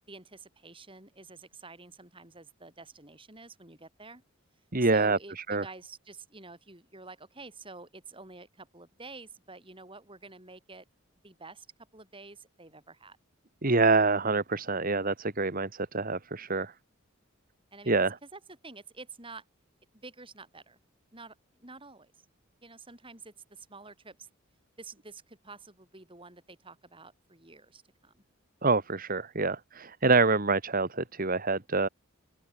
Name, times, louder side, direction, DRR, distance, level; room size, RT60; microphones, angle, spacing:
voice 1, 0.1-4.2 4.8-10.8 11.2-11.7 11.9-13.2 17.7-19.4 19.9-20.8 21.1-22.1 22.6-24.3 24.8-28.2, right 3 dB, 25° right, 7.6 m, -49 dB
voice 2, 4.7-5.6 13.6-16.7 17.9-18.2 28.6-31.9, right 3 dB, 45° right, 1.8 m, -26 dB
open air
head